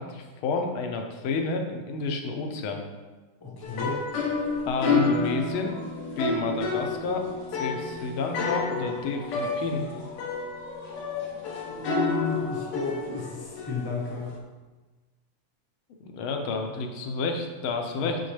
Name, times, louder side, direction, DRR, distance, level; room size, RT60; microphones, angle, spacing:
voice 1, 0.0-2.8 4.7-5.7 6.2-9.8 16.0-18.2, left 4 dB, 75° left, 4 dB, 1.6 m, -30 dB
voice 2, 3.4-4.0 11.7-14.3 18.0-18.1, left 3 dB, 20° left, -3 dB, 0.6 m, -33 dB
sound 1, 3.6-14.4, left 4 dB, 90° left, 1.9 m, -30 dB
6.4 x 6.4 x 3.3 m, 1.2 s
omnidirectional pair, 2.4 m